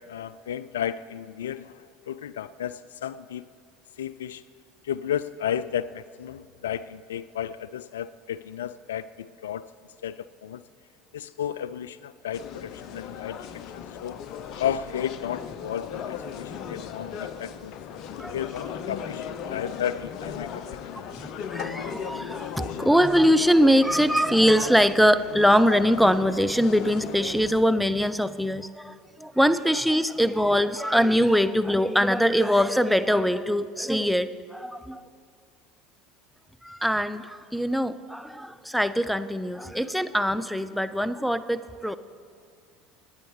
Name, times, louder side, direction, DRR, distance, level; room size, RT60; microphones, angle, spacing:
voice 1, 0.0-3.5 4.0-4.4 4.8-9.7 10.0-10.6 11.1-13.5 13.7-14.2 14.5-17.7 18.3-21.0, left 9 dB, 80° left, 16 dB, 0.3 m, -33 dB
sound 1, 12.3-27.6, left 7 dB, 55° left, 0.8 m, -37 dB
voice 2, 21.2-35.0 36.6-42.0, equal, ahead, 11 dB, 0.6 m, -22 dB
28.0 x 10.0 x 3.3 m, 2.2 s
hypercardioid pair, 70°, 0 cm